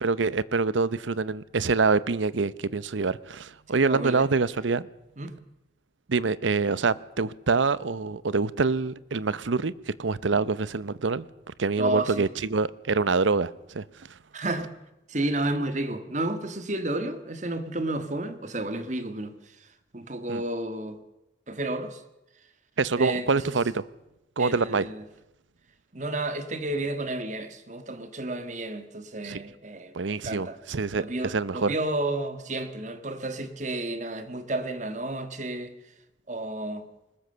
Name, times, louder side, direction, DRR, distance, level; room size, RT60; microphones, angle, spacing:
voice 1, 0.0-4.9 6.1-9.7 10.0-11.3 11.6-13.8 20.3-20.4 22.8-23.8 24.4-24.9 29.2-29.4 29.9-31.7, right 4 dB, 85° right, 0.7 m, -25 dB
voice 2, 3.7-4.3 5.2-5.3 11.8-12.3 14.3-14.7 15.1-19.7 19.9-21.0 21.5-22.0 23.0-23.6 24.4-25.0 25.9-30.6 31.0-35.7 36.3-36.8, right 2 dB, 40° right, 1.6 m, -31 dB
21.0 x 20.0 x 6.8 m
head